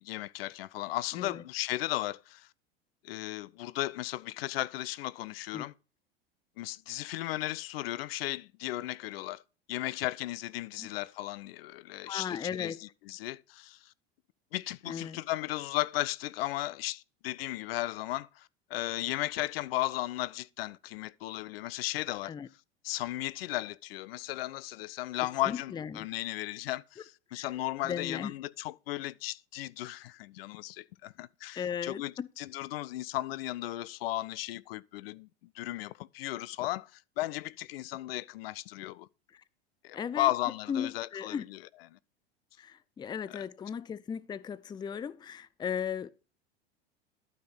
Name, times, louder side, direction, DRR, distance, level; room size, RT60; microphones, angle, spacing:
voice 1, 0.0-2.5 3.0-5.7 6.6-9.4 9.7-13.9 14.5-22.3 22.8-35.3 35.5-39.1 39.8-41.6 41.9-42.0 43.3-43.4, left 16 dB, 70° left, 0.5 m, -35 dB
voice 2, 12.0-12.8 14.9-15.2 22.2-22.5 25.5-26.1 27.3-27.5 27.8-28.3 31.6-32.3 39.3-39.4 39.9-40.3 40.7-41.4 42.6-46.1, left 7 dB, 15° left, 0.4 m, -36 dB
12.0 x 5.2 x 6.0 m
hypercardioid pair, 90°, 31 cm